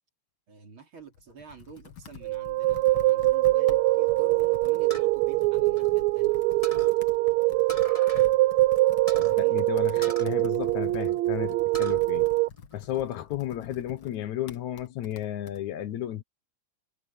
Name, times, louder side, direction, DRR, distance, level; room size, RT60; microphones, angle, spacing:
voice 1, 0.5-6.4 9.2-9.6, right 5 dB, 45° right, 3.5 m, -48 dB
Computer keyboard, 1.0-15.6, left 7 dB, 50° left, 1.8 m, -48 dB
sound 1, 2.2-12.5, right 19 dB, 75° right, 1.8 m, -23 dB
sound 2, 4.9-6.3 6.6-7.0 7.7-8.3 8.6-8.7 9.1-9.3 10.0-11.1 11.5-12.0 12.4-13.2, right 1 dB, 10° left, 4.9 m, -40 dB
voice 2, 9.2-12.3 12.7-16.2, left 12 dB, 75° left, 2.4 m, -33 dB
omnidirectional pair, 3.4 m